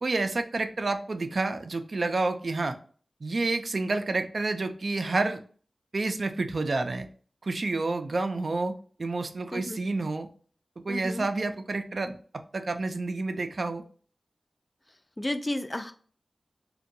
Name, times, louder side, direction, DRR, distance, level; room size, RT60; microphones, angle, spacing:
voice 1, 0.0-2.8 3.2-5.4 5.9-7.1 7.4-8.7 9.0-10.3 10.8-12.2 12.5-13.8, right 3 dB, 70° right, 7 dB, 0.3 m, -29 dB
voice 2, 10.9-11.3 15.2-15.9, left 1 dB, 30° left, 7 dB, 0.4 m, -32 dB
2.6 x 2.2 x 2.5 m, 0.44 s
cardioid pair, 40°, 0 cm